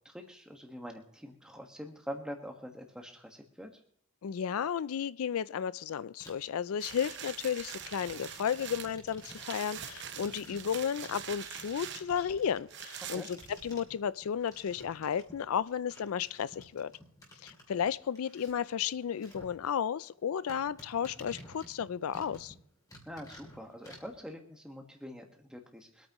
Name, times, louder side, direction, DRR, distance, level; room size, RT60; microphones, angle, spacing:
voice 1, 0.0-3.7 13.1-13.3 23.0-26.1, equal, 5° right, 1.5 m, -45 dB
voice 2, 4.2-13.4 13.6-16.9 17.4-22.5, left 8 dB, 90° left, 0.4 m, -33 dB
sound 1, 6.2-6.6 6.9-15.6 15.9-19.5 19.9-20.0 20.5-22.6 22.9-24.1, equal, 15° left, 2.7 m, -54 dB
sound 2, 6.8-14.0 14.5-14.6, right 9 dB, 55° right, 0.9 m, -44 dB
24.5 x 9.1 x 3.1 m
head